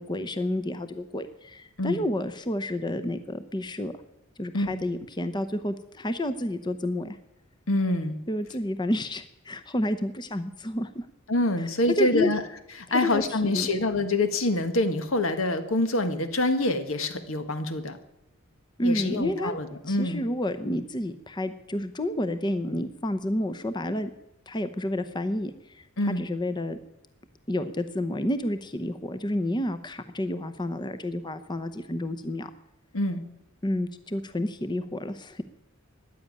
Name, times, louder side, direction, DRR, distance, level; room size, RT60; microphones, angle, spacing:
voice 1, 0.0-3.9 4.4-7.2 8.3-11.1 11.6-11.7 12.0-12.3 12.9-13.7 18.8-19.5 19.9-24.1 24.5-26.8 27.5-32.5 33.6-35.4, left 1 dB, 20° left, 10 dB, 0.7 m, -30 dB
voice 2, 7.7-8.2 11.3-12.4 12.8-18.0 18.8-20.2 26.0-26.2 32.9-33.2, left 2 dB, 80° left, 8 dB, 1.6 m, -26 dB
14.5 x 10.0 x 8.7 m, 0.86 s
head